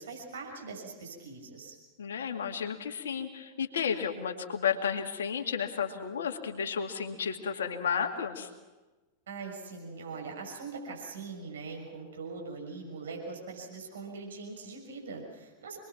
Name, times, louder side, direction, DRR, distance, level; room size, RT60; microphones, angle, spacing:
voice 1, 0.0-1.7 9.3-15.9, right 4 dB, 65° right, 0 dB, 6.5 m, -42 dB
voice 2, 2.0-8.5, left 7 dB, 65° left, 4 dB, 2.3 m, -32 dB
27.5 x 21.5 x 6.0 m, 1.2 s
figure-of-eight pair, 90°, 0 cm